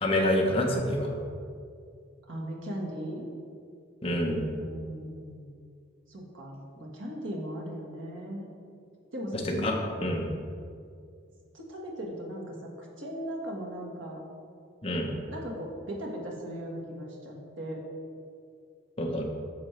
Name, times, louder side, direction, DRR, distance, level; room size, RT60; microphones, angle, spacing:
voice 1, 0.0-1.1 4.0-4.5 9.4-10.3 14.8-15.1 19.0-19.2, left 1 dB, 30° left, 1 dB, 0.9 m, -27 dB
voice 2, 2.3-3.3 4.6-5.6 6.1-8.5 9.1-9.7 11.5-14.2 15.3-17.8, equal, 80° right, -1 dB, 1.5 m, -38 dB
9.6 x 6.2 x 3.3 m, 2.3 s
head